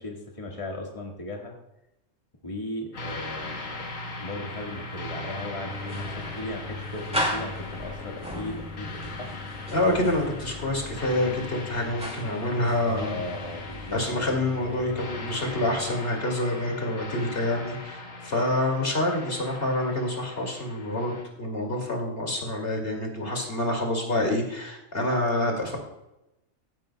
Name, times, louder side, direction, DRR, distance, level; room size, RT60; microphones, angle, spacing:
voice 1, 0.0-1.5 2.4-3.9 4.2-8.9 9.2-9.3 12.8-14.4, left 1 dB, 25° left, 0 dB, 1.8 m, -37 dB
sound 1, 2.9-21.2, left 2 dB, 90° left, 1.7 m, -40 dB
sound 2, 5.7-15.9, left 1 dB, 5° right, 2.1 m, -37 dB
voice 2, 9.7-13.2 13.9-21.1 21.4-25.8, left 1 dB, 50° left, 1 dB, 2.7 m, -27 dB
15.5 x 10.5 x 2.2 m, 0.90 s
omnidirectional pair, 1.3 m